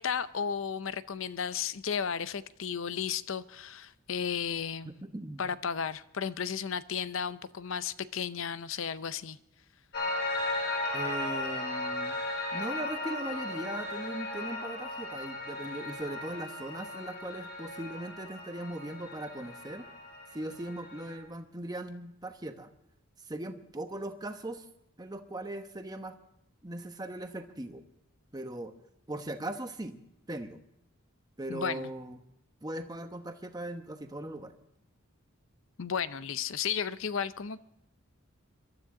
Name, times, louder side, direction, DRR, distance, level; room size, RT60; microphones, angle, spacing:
voice 1, 0.0-4.9 5.4-9.4 31.5-31.9 35.8-37.6, left 7 dB, 65° left, 15 dB, 0.6 m, -34 dB
voice 2, 4.8-5.4 10.9-12.2 12.5-19.9 20.3-22.7 23.3-24.6 25.0-26.2 26.6-27.8 28.3-28.7 29.1-30.0 30.3-30.6 31.4-32.2 32.6-34.6, right 1 dB, 20° right, 7 dB, 1.0 m, -39 dB
Piano, 9.9-21.2, left 2 dB, 50° left, 3.8 m, -36 dB
23.0 x 13.0 x 3.8 m, 0.81 s
head